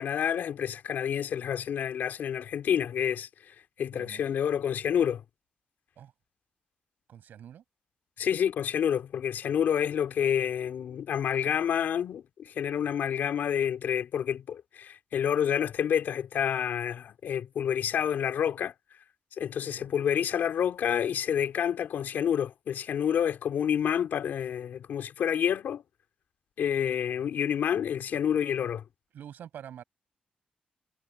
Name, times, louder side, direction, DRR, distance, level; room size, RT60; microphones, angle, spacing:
voice 1, 0.0-5.2 8.2-18.7 19.4-25.8 26.6-28.8, left 9 dB, 80° left, 3.7 m, -28 dB
voice 2, 7.1-7.6 19.6-20.0 29.1-29.8, right 9 dB, 85° right, 7.8 m, -46 dB
cardioid pair, 110°, 3 cm